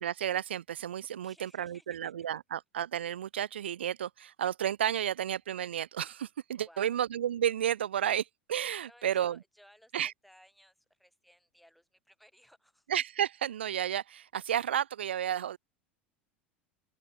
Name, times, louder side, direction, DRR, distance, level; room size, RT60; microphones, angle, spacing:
voice 1, 0.0-9.4 9.9-10.1 12.9-15.6, right 10 dB, 75° right, 0.3 m, -32 dB
voice 2, 1.2-2.1 6.6-7.0 8.9-12.9, equal, ahead, 3.5 m, -60 dB
open air
figure-of-eight pair, 80°, 6 cm